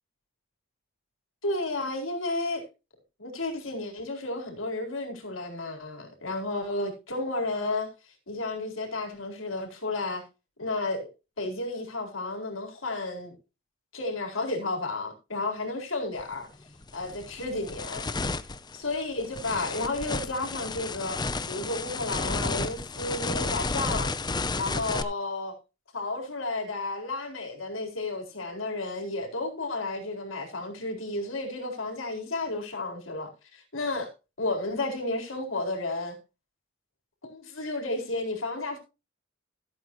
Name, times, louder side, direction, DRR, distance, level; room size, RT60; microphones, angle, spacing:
voice 1, 1.4-2.6 3.2-10.2 10.6-11.1 11.4-13.3 13.9-16.5 16.9-18.0 18.7-21.2 21.5-24.1 24.6-25.5 25.9-34.1 34.4-36.2 37.2-38.8, left 2 dB, 85° left, 4.3 m, -32 dB
sound 1, 16.2-16.3 16.8-25.0, left 3 dB, 20° left, 0.7 m, -32 dB
15.5 x 8.7 x 3.1 m
head